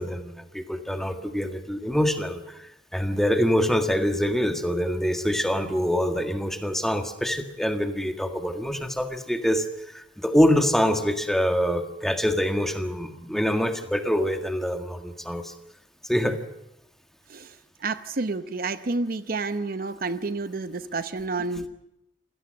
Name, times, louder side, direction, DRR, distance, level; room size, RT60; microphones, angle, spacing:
voice 1, 0.0-2.6 2.9-9.6 9.9-15.5 16.0-16.4, equal, ahead, 6 dB, 1.7 m, -25 dB
voice 2, 17.8-21.7, right 3 dB, 50° right, 11 dB, 0.8 m, -29 dB
27.0 x 17.5 x 7.6 m, 0.86 s
head